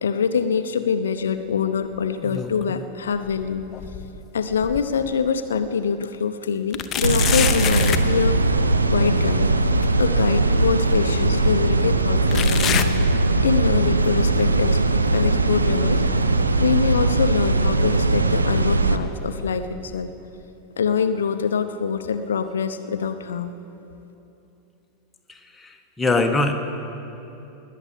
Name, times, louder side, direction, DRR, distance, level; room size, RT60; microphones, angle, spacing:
voice 1, 0.0-3.7 4.3-8.4 8.9-9.5 10.0-12.8 13.4-14.8 15.1-16.0 16.6-20.1 20.8-23.5, left 6 dB, 65° left, 10 dB, 0.7 m, -24 dB
sound 1, 2.0-2.9 3.2-5.1 5.6-5.7 6.7-8.1 9.8-9.9 10.9-11.0 12.3-13.7 14.0-14.4 15.1-15.2 16.1-16.2, left 8 dB, 30° left, 0.8 m, -28 dB
sound 2, 7.0-19.0, right 2 dB, 80° right, 0.7 m, -20 dB
voice 2, 25.6-26.5, left 2 dB, 10° left, 4 dB, 1.4 m, -22 dB
19.5 x 7.7 x 9.1 m, 2.9 s
figure-of-eight pair, 90°, 0 cm